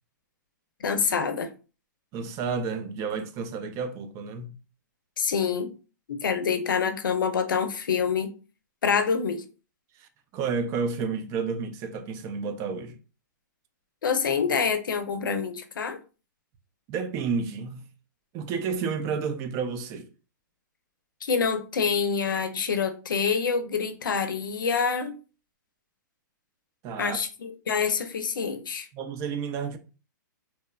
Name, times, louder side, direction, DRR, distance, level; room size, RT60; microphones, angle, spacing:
voice 1, 0.8-1.5 5.2-5.7 6.1-8.3 8.8-9.4 14.0-16.0 21.2-25.1 27.0-28.9, left 6 dB, 85° left, 0.5 m, -26 dB
voice 2, 2.1-4.6 10.0-13.0 16.9-17.8 18.3-20.1 26.8-27.2 28.9-29.8, right 5 dB, 30° right, 0.3 m, -31 dB
2.9 x 2.1 x 2.3 m
hypercardioid pair, 135°, 11 cm